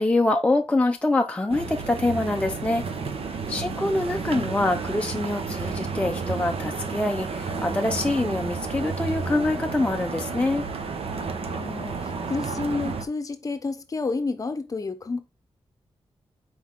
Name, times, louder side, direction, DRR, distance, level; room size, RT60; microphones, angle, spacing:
voice 1, 0.0-2.9 3.5-10.7, left 2 dB, 10° left, 0.5 m, -25 dB
sound 1, 1.5-13.0, right 4 dB, 70° right, 1.0 m, -31 dB
voice 2, 3.5-4.1 11.4-15.2, left 3 dB, 35° left, 0.8 m, -31 dB
6.1 x 4.6 x 3.7 m
wide cardioid pair, 155°, 10 cm